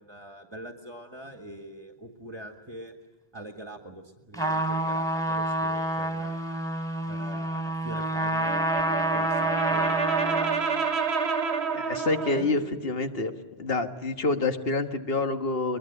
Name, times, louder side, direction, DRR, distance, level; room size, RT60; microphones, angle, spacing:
voice 1, 0.0-3.0 3.3-6.6 7.1-10.7 12.3-12.6, right 1 dB, 25° right, 5 dB, 1.8 m, -43 dB
Trumpet, 4.3-10.6, right 1 dB, 5° left, 3.1 m, -28 dB
Brass instrument, 8.4-12.6, right 5 dB, 90° right, 1.7 m, -28 dB
voice 2, 11.7-13.3 13.6-15.8, left 3 dB, 65° left, 7 dB, 1.8 m, -27 dB
23.0 x 21.5 x 9.8 m, 1.1 s
omnidirectional pair, 1.1 m